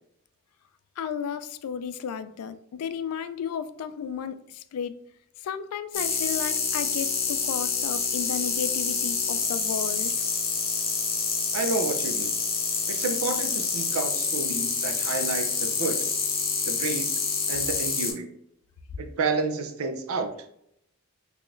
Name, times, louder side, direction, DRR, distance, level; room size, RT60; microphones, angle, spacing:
voice 1, 1.0-5.0 5.4-10.2, left 7 dB, 80° left, 0.3 m, -33 dB
sound 1, 5.9-18.1, left 5 dB, 40° left, 1.0 m, -27 dB
voice 2, 11.5-12.3 12.9-16.1 16.7-17.1 17.5-18.3 19.0-20.3, right 3 dB, 75° right, 0.5 m, -30 dB
3.8 x 2.9 x 2.5 m
head